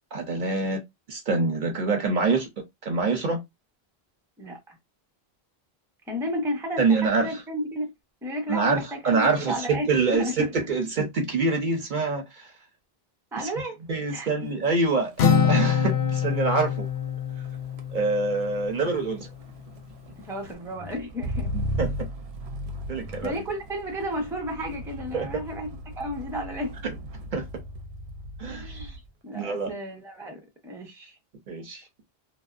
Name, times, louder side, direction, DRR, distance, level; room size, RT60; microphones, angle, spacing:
voice 1, 0.1-0.8 1.1-2.5 2.8-3.4 6.8-7.4 8.5-12.5 13.4-13.5 13.9-16.9 17.9-19.3 21.5-22.1 22.9-23.4 25.1-25.4 27.3-27.5 28.4-28.9 29.3-29.7 31.5-31.8, right 3 dB, 55° right, 0.7 m, -26 dB
voice 2, 4.4-4.8 6.1-7.9 8.2-9.9 10.2-10.5 13.3-13.8 14.1-14.5 20.2-21.5 23.2-25.7 26.0-26.7 28.5-29.0 29.2-31.2, equal, 5° right, 0.5 m, -32 dB
Motor vehicle (road), 14.0-14.3 14.6-29.1 29.5-29.9, equal, 90° right, 0.8 m, -37 dB
Acoustic guitar, 15.2-18.8, left 7 dB, 85° left, 0.8 m, -25 dB
2.5 x 2.1 x 2.3 m
omnidirectional pair, 1.0 m